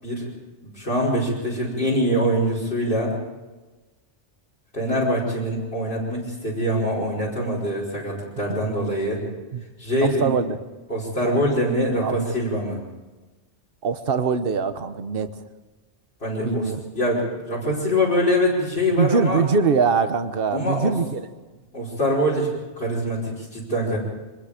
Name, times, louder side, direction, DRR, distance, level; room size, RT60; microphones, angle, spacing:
voice 1, 0.7-3.1 4.7-9.2 9.8-10.3 10.9-12.8 16.2-19.4 20.5-20.9 21.7-22.5 22.8-24.0, equal, 55° left, -5 dB, 5.4 m, -24 dB
voice 2, 10.0-10.6 11.2-11.4 12.0-12.3 13.8-15.4 16.4-16.8 18.9-21.2, right 5 dB, 55° right, 10 dB, 1.3 m, -23 dB
25.0 x 21.0 x 5.1 m, 1.2 s
omnidirectional pair, 1.2 m